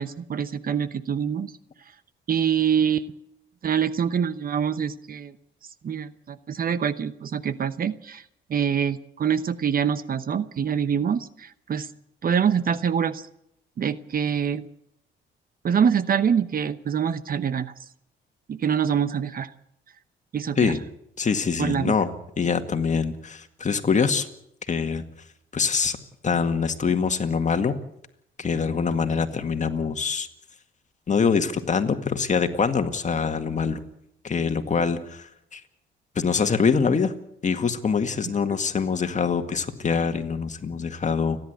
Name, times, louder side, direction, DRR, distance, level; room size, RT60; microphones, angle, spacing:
voice 1, 0.0-1.5 2.3-3.1 3.6-5.3 5.8-8.2 8.5-11.9 12.2-13.3 13.8-14.7 15.6-17.7 18.5-19.5 20.3-20.7 21.6-21.9, right 7 dB, 45° right, 14 dB, 0.9 m, -25 dB
voice 2, 21.2-24.3 24.7-25.0 25.5-26.0 26.2-27.8 28.4-30.3 31.1-33.9 34.2-35.6 36.2-37.1 37.4-41.4, left 5 dB, 35° left, 7 dB, 1.9 m, -24 dB
29.5 x 11.0 x 8.1 m, 0.75 s
cardioid pair, 90°, 20 cm